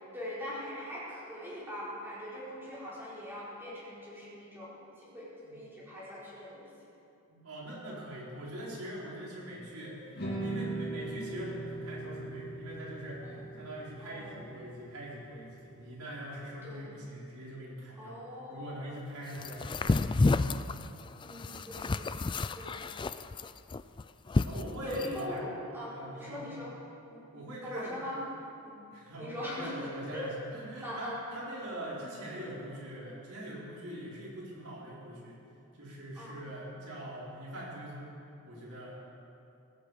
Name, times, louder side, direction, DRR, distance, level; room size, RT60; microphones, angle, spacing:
voice 1, 0.1-6.6 13.2-13.5 14.0-14.4 16.6-16.9 18.0-18.9 21.2-22.2 22.5-23.1 24.8-26.7 27.1-27.3 27.6-28.2 28.6-28.8 29.2-30.3 30.8-31.2 36.1-36.4, left 1 dB, 10° right, -9 dB, 4.5 m, -41 dB
voice 2, 7.3-18.2 18.5-20.5 24.4-25.5 25.9-26.5 27.3-28.0 28.9-35.4 35.7-38.2 38.4-38.9, right 1 dB, 85° right, -5 dB, 4.7 m, -43 dB
sound 1, 10.2-16.4, right 2 dB, 45° left, 2.8 m, -40 dB
sound 2, 19.4-25.2, left 3 dB, 20° left, 0.3 m, -30 dB
17.5 x 15.0 x 5.1 m, 2.7 s
head